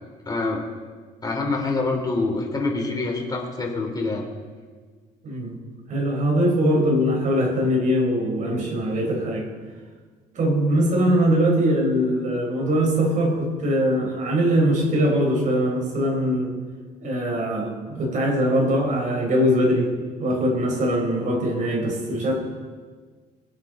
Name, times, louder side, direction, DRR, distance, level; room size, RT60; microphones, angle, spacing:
voice 1, 0.3-0.6 1.2-4.2, left 3 dB, 25° left, 1 dB, 2.9 m, -25 dB
voice 2, 5.2-5.6 5.9-9.5 10.3-16.5 17.0-19.9 20.2-22.3, equal, 50° right, 0 dB, 4.5 m, -22 dB
22.0 x 8.8 x 4.2 m, 1.5 s
cardioid pair, 110°, 17 cm